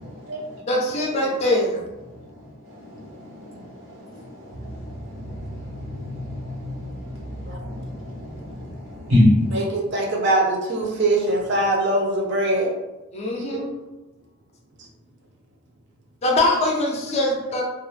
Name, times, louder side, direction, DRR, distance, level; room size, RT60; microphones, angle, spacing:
voice 1, 0.0-0.6 0.9-1.0 1.8-9.9 10.9-11.3, left 1 dB, 80° right, -5 dB, 1.1 m, -28 dB
voice 2, 0.7-1.8 13.1-13.7 16.2-17.6, left 1 dB, 30° left, -1 dB, 0.4 m, -22 dB
voice 3, 9.5-12.7 13.5-13.6, right 1 dB, 55° right, -1 dB, 0.6 m, -22 dB
2.3 x 2.0 x 3.1 m, 1.1 s
head